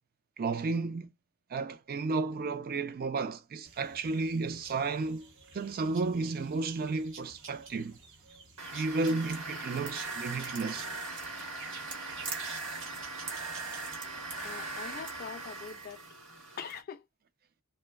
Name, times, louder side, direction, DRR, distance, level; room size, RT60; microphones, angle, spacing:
voice 1, 0.4-1.1 1.5-5.3 5.5-8.0 8.7-10.9, right 3 dB, 40° right, 0.4 m, -32 dB
sound 1, 3.6-15.9, right 5 dB, 60° right, 0.8 m, -51 dB
sound 2, 8.6-16.8, right 3 dB, 85° right, 1.1 m, -40 dB
voice 2, 14.4-16.0 16.6-17.0, left 7 dB, 40° left, 0.3 m, -43 dB
3.2 x 2.1 x 2.2 m
head